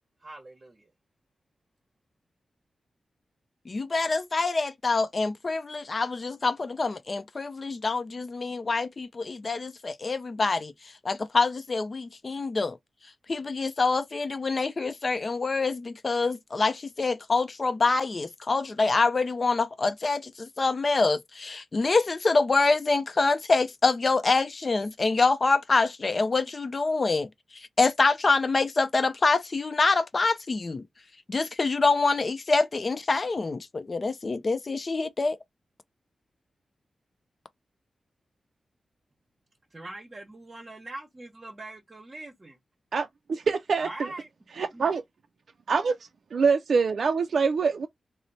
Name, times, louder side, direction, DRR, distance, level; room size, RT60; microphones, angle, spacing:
voice 1, 0.2-0.9 39.7-42.6 43.8-44.3 44.7-44.9, right 2 dB, 35° right, 0.9 m, -42 dB
voice 2, 3.7-10.7 11.0-12.8 13.3-27.3 27.8-30.8 31.3-35.4, left 3 dB, 40° left, 0.5 m, -26 dB
voice 3, 42.9-44.1 44.5-45.0 45.7-45.9 46.3-47.9, right 5 dB, 70° right, 0.3 m, -25 dB
3.1 x 2.0 x 4.0 m
wide cardioid pair, 90°, 0 cm